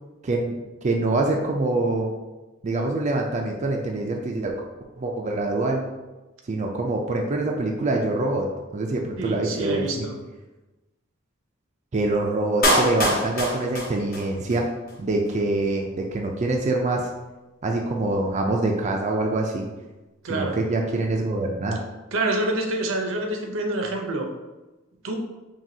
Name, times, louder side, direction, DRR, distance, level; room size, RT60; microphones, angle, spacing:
voice 1, 0.2-0.6 0.8-2.1 2.6-4.5 5.0-5.8 6.5-8.5 8.7-10.1 11.9-14.7 15.0-17.1 17.6-19.7 20.3-21.8, right 2 dB, 35° right, 0 dB, 0.4 m, -25 dB
voice 2, 9.2-10.2 20.2-20.6 22.1-24.3 25.0-25.2, right 2 dB, 80° right, 2 dB, 0.7 m, -27 dB
Clapping, 12.6-14.6 14.9-15.0, equal, 50° left, 1.0 m, -24 dB
5.9 x 2.4 x 2.7 m, 1.1 s
head